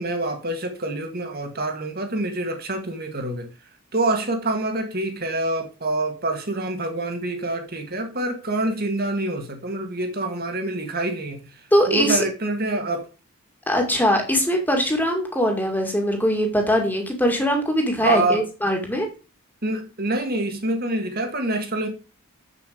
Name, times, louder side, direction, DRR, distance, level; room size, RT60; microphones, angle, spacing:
voice 1, 0.0-3.5 3.9-13.1 18.0-18.4 19.6-21.9, right 2 dB, 45° right, 1.8 m, -26 dB
voice 2, 11.7-12.2 13.7-19.1, equal, 10° left, 2.0 m, -21 dB
7.6 x 7.0 x 5.0 m
head